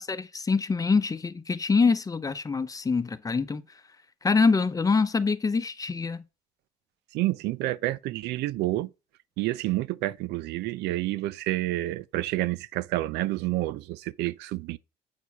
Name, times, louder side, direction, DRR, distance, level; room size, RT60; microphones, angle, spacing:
voice 1, 0.1-3.6 4.2-6.2, left 4 dB, 20° left, 0.8 m, -25 dB
voice 2, 7.1-8.9 9.4-14.8, right 16 dB, 85° right, 0.5 m, -29 dB
8.3 x 4.6 x 5.7 m
cardioid pair, 110°, 17 cm